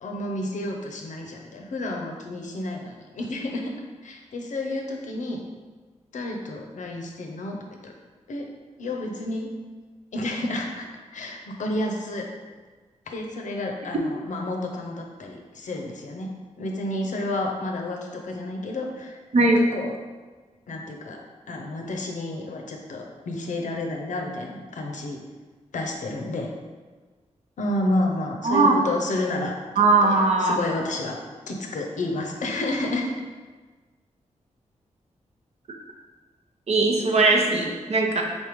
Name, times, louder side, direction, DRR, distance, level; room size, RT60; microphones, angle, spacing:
voice 1, 0.0-3.7 4.0-5.4 6.1-7.6 7.8-7.9 8.3-8.5 8.8-9.5 10.1-10.9 11.1-12.3 13.1-16.3 16.6-19.9 20.7-21.2 21.5-25.2 25.7-26.5 27.6-31.2 31.5-33.1, left 1 dB, 75° left, 1 dB, 0.6 m, -30 dB
voice 2, 28.4-28.8 29.8-30.6 36.7-38.2, right 3 dB, 60° right, 1 dB, 0.7 m, -19 dB
4.2 x 3.5 x 3.0 m, 1.4 s
wide cardioid pair, 85°, 13 cm